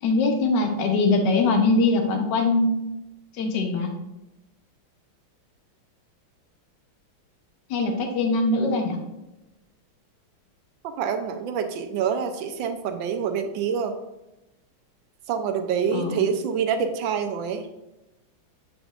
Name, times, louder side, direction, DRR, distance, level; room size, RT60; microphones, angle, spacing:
voice 1, 0.0-2.7 3.3-3.9 7.7-9.0 15.9-16.3, left 3 dB, 65° left, 4 dB, 1.4 m, -22 dB
voice 2, 10.8-13.9 15.3-17.7, right 7 dB, 80° right, 7 dB, 1.4 m, -26 dB
8.0 x 5.1 x 2.5 m, 0.96 s
omnidirectional pair, 2.2 m